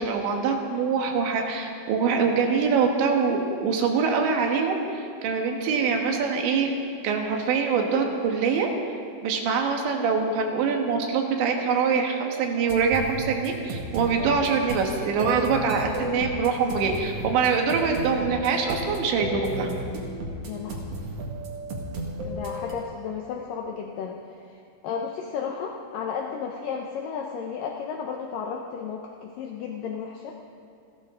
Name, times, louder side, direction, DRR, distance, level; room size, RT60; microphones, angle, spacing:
voice 1, 0.0-6.7 7.0-8.7 9.2-19.7, right 5 dB, 85° right, 3 dB, 3.8 m, -24 dB
sound 1, 12.5-22.7, right 1 dB, 50° right, 2.1 m, -34 dB
voice 2, 20.4-20.8 22.2-30.3, left 6 dB, 80° left, 1 dB, 1.9 m, -33 dB
29.5 x 13.0 x 3.8 m, 2.4 s
omnidirectional pair, 5.0 m